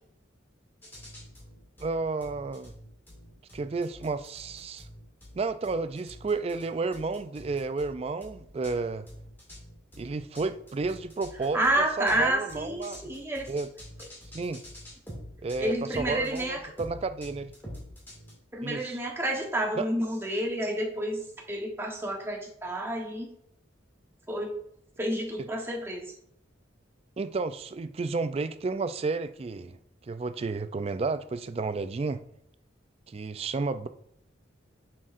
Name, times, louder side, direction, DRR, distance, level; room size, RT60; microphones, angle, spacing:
sound 1, 0.8-18.3, equal, 10° left, 2.3 m, -46 dB
voice 1, 1.8-2.7 3.5-4.9 5.3-9.1 10.0-11.6 12.0-13.1 13.5-13.7 14.3-14.6 15.4-17.5 18.6-19.0 19.8-19.9 27.2-29.8 30.0-32.2 33.1-33.9, right 3 dB, 30° right, 0.3 m, -31 dB
voice 2, 11.5-13.5 15.6-16.6 18.5-23.3 24.3-24.5 25.0-26.1, right 1 dB, 10° right, 1.0 m, -29 dB
7.4 x 6.5 x 2.5 m
head